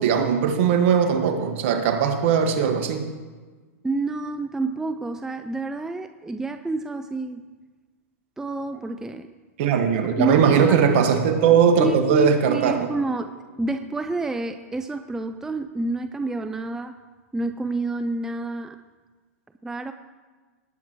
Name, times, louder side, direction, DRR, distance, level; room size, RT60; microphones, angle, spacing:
voice 1, 0.0-3.0 9.6-12.9, right 7 dB, 55° right, 4 dB, 1.7 m, -19 dB
voice 2, 3.8-7.4 8.4-9.3 10.1-10.4 10.7-10.9 11.8-17.0 17.3-18.8 19.6-19.9, right 2 dB, 5° right, 8 dB, 0.4 m, -29 dB
Acoustic guitar, 10.4-13.9, right 13 dB, 35° right, 2.0 m, -38 dB
18.5 x 8.1 x 3.1 m, 1.3 s
hypercardioid pair, 125°, 8 cm